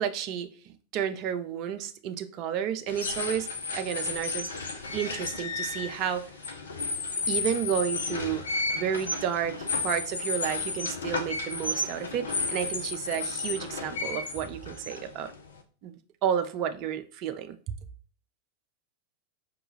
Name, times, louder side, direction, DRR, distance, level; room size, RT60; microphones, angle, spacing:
voice 1, 0.0-4.5 4.9-6.3 7.3-8.4 8.7-15.3 15.8-17.7, right 9 dB, 40° right, 0.4 m, -31 dB
sound 1, 2.9-15.6, left 3 dB, 70° left, 0.5 m, -33 dB
5.2 x 2.2 x 3.2 m
figure-of-eight pair, 90°, 0 cm